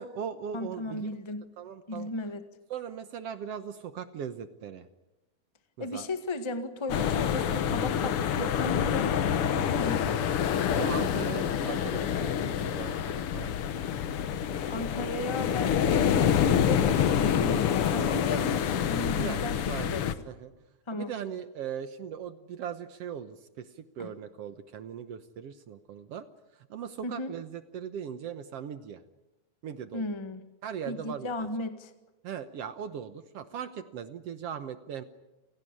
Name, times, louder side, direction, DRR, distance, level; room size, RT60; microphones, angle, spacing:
voice 1, 0.0-1.1 1.6-2.1 2.7-4.9 5.8-6.1 10.7-13.5 19.2-19.4 19.7-20.5 20.9-26.3 26.6-29.0 29.6-30.1 30.6-31.5 32.2-35.0, right 8 dB, 65° right, 11 dB, 1.8 m, -39 dB
voice 2, 0.5-1.5 1.9-2.4 5.8-10.5 14.7-20.1 20.9-21.1 24.0-24.1 27.0-27.3 29.9-30.4 30.9-31.9, left 2 dB, 15° left, 8 dB, 1.1 m, -35 dB
sound 1, 6.9-20.1, left 8 dB, 60° left, 1.7 m, -27 dB
28.5 x 17.5 x 10.0 m, 1.0 s
omnidirectional pair, 3.4 m